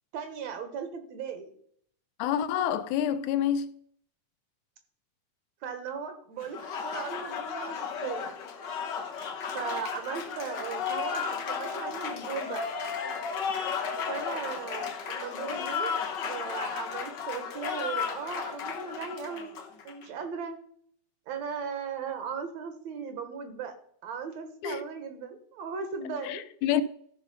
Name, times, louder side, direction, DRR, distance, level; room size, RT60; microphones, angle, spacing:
voice 1, 0.1-1.5 5.6-8.4 9.5-11.2 11.5-12.7 14.1-19.5 19.8-20.6 21.3-23.8 24.0-26.4, right 6 dB, 65° right, 2.4 m, -37 dB
voice 2, 2.2-3.7 24.6-24.8 26.2-26.8, left 10 dB, 80° left, 2.0 m, -28 dB
Applause, 6.4-20.1, left 6 dB, 60° left, 1.2 m, -34 dB
13.5 x 5.4 x 5.3 m
omnidirectional pair, 3.5 m